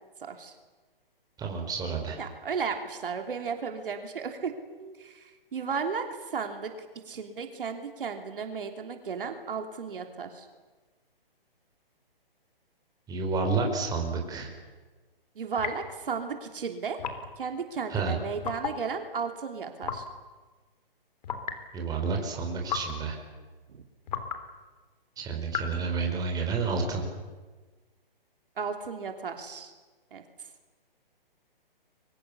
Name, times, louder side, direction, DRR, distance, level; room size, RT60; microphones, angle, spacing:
voice 1, 0.2-0.5 2.2-4.5 4.8-10.5 15.3-17.0 17.4-20.0 23.7-23.8 28.6-29.7 30.1-30.2, right 5 dB, 65° right, 5 dB, 3.2 m, -34 dB
voice 2, 1.4-2.2 13.1-14.5 17.9-18.2 21.7-23.2 25.2-27.0, right 4 dB, 15° right, 2 dB, 4.6 m, -30 dB
sound 1, 15.6-16.0 17.0-17.4 18.4-18.8 19.8-20.1 21.2-21.6 22.7-23.0 24.1-24.4 25.5-25.8, left 7 dB, 45° left, 3.4 m, -34 dB
30.0 x 23.5 x 7.0 m, 1.3 s
hypercardioid pair, 145°, 29 cm